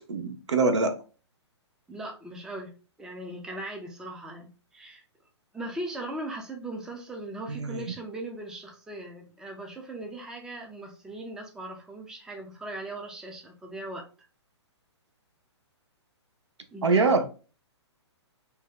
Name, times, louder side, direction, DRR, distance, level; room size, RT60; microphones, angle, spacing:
voice 1, 0.1-1.0 7.5-7.8 16.8-17.3, right 3 dB, 75° right, 0.6 m, -24 dB
voice 2, 1.9-2.7 3.0-5.0 5.5-14.1 16.7-17.1, right 1 dB, 5° right, 0.4 m, -39 dB
2.7 x 2.1 x 3.7 m
figure-of-eight pair, 125°, 15 cm